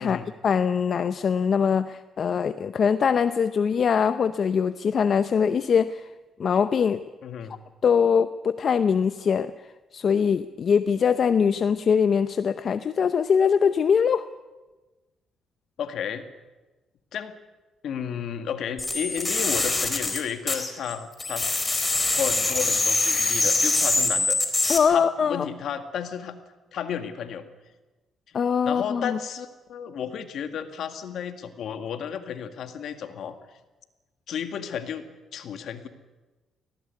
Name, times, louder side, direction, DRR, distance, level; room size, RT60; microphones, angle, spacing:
voice 1, 0.0-6.0 6.4-7.0 7.8-9.5 9.9-14.3 24.7-25.5 28.3-29.2, left 6 dB, 50° left, 11 dB, 0.7 m, -22 dB
voice 2, 7.2-7.6 15.8-16.3 17.1-17.4 17.8-24.4 24.9-26.4 26.7-27.5 28.6-33.4 34.3-35.9, left 8 dB, 70° left, 7 dB, 2.0 m, -33 dB
sound 1, 18.8-20.9 21.2-24.8, left 2 dB, 20° left, 3.9 m, -24 dB
19.0 x 17.0 x 9.5 m, 1.2 s
cardioid pair, 90°, 0 cm